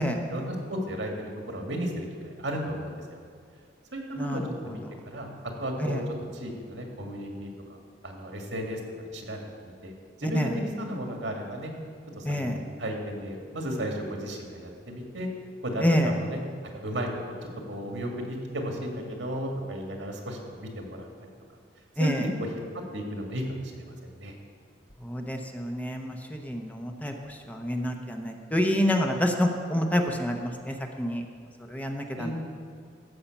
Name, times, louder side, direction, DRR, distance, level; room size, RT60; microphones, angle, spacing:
voice 1, 0.3-3.2 3.9-4.8 5.1-5.3 5.6-6.0 6.3-7.5 8.0-8.8 9.1-9.9 10.2-11.7 12.2-15.3 15.6-16.4 16.8-21.1 22.0-22.5 22.9-24.3 32.2-32.3, equal, 80° right, 1 dB, 2.0 m, -34 dB
voice 2, 4.2-4.8 5.8-6.0 10.2-10.5 12.2-12.6 15.8-16.1 22.0-22.2 25.0-31.2 31.7-32.3, equal, 10° left, 3 dB, 0.8 m, -28 dB
14.0 x 5.8 x 7.1 m, 2.3 s
head